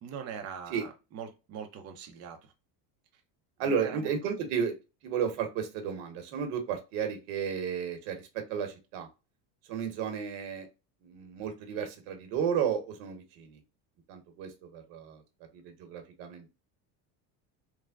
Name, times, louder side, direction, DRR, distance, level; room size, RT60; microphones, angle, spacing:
voice 1, 0.0-2.5 3.6-4.1, right 7 dB, 35° right, 4 dB, 0.6 m, -42 dB
voice 2, 3.6-4.7 5.0-9.1 9.7-10.7 11.0-13.6 14.1-15.2 15.5-16.5, right 7 dB, 80° right, 5 dB, 1.1 m, -33 dB
3.4 x 2.1 x 2.2 m, 0.28 s
supercardioid pair, 120°, 46 cm